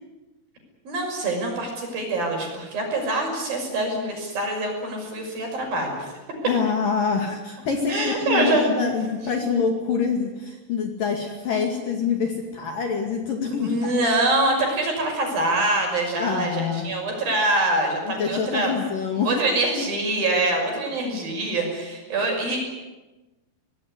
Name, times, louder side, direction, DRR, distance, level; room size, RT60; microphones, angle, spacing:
voice 1, 0.9-6.1 7.9-8.7 13.5-18.7 19.3-22.6, right 2 dB, 45° right, 2 dB, 7.4 m, -24 dB
voice 2, 6.5-13.9 16.2-16.9 18.1-19.3, left 5 dB, 50° left, 3 dB, 3.4 m, -25 dB
24.5 x 19.5 x 9.7 m, 1.1 s
omnidirectional pair, 5.8 m